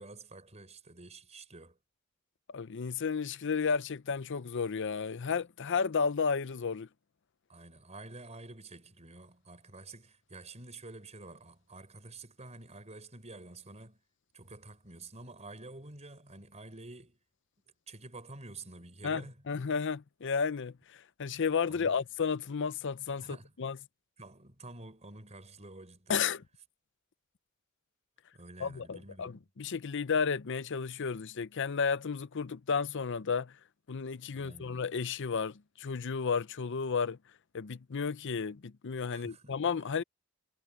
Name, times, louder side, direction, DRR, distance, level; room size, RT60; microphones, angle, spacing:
voice 1, 0.0-1.8 7.5-14.0 14.3-17.2 17.9-19.4 21.7-22.0 23.2-23.5 24.2-26.2 28.3-29.4 34.3-34.8 39.1-39.6, right 2 dB, 30° right, 6.0 m, -49 dB
voice 2, 2.5-6.9 19.0-23.8 26.1-26.4 28.6-33.5 33.9-37.2 37.5-40.0, left 5 dB, 60° left, 0.6 m, -32 dB
head